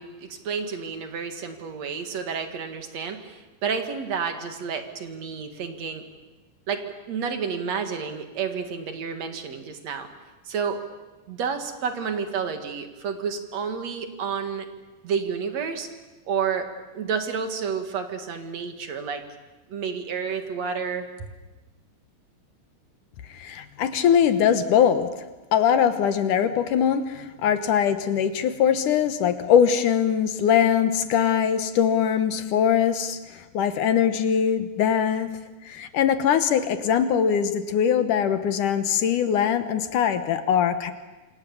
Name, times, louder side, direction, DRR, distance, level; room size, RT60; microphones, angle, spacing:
voice 1, 0.0-6.0 6.7-10.1 10.5-10.8 11.3-14.7 15.0-15.9 16.3-19.2 19.7-21.1, right 6 dB, 55° right, 7 dB, 2.8 m, -30 dB
voice 2, 23.3-25.1 25.5-35.4 35.7-40.9, left 8 dB, 70° left, 10 dB, 2.6 m, -22 dB
27.0 x 26.5 x 7.2 m, 1.2 s
omnidirectional pair, 4.0 m